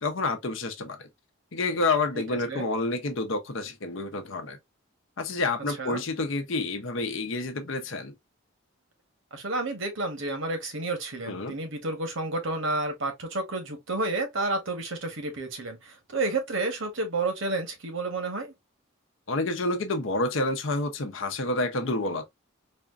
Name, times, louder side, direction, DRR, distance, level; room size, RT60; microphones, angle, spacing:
voice 1, 0.0-1.0 1.5-4.6 5.2-8.1 11.3-11.5 19.3-22.3, left 2 dB, 70° left, 0.7 m, -29 dB
voice 2, 2.1-2.7 5.8-6.0 9.3-18.5, right 2 dB, 70° right, 1.2 m, -30 dB
4.2 x 2.5 x 2.4 m
head